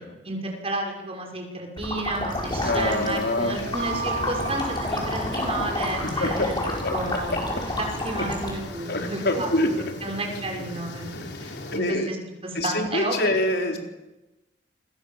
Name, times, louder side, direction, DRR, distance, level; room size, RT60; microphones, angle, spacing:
voice 1, 0.2-6.5 6.9-7.3 7.8-12.2 12.4-13.3, right 2 dB, 35° right, 2 dB, 6.3 m, -32 dB
sound 1, 1.8-8.5, left 1 dB, 25° left, 7.6 m, -30 dB
sound 2, 2.4-11.8, left 2 dB, 90° left, 4.2 m, -38 dB
voice 2, 2.6-3.6 6.0-6.3 6.6-6.9 7.3-7.4 8.2-8.3 8.9-9.8 11.1-12.1 12.5-13.8, left 1 dB, 65° left, 3 dB, 4.4 m, -26 dB
sound 3, 3.6-6.3, right 3 dB, 55° right, 1.4 m, -35 dB
28.5 x 24.5 x 7.5 m, 1.0 s
head